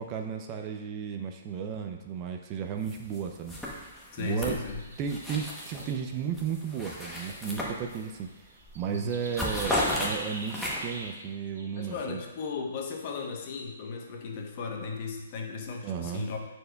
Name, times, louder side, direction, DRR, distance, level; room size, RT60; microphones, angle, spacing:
voice 1, 0.0-3.9 4.2-4.6 5.0-8.5 8.7-12.2 15.8-16.3, right 7 dB, 25° right, 4 dB, 0.4 m, -34 dB
sound 1, 2.9-3.2 3.5-5.9 6.3-8.2 8.6-8.8 9.1-11.0, left 1 dB, 5° left, 0.9 m, -34 dB
voice 2, 4.1-4.8 8.9-9.1 11.8-16.4, left 4 dB, 40° left, 2 dB, 0.9 m, -36 dB
sound 2, 4.6-5.3 5.6-6.1 6.9-7.0 7.4-11.3 11.5-12.0 13.0-13.3, right 2 dB, 80° right, 1.3 m, -44 dB
9.6 x 4.4 x 2.3 m, 1.1 s
hypercardioid pair, 155°, 0 cm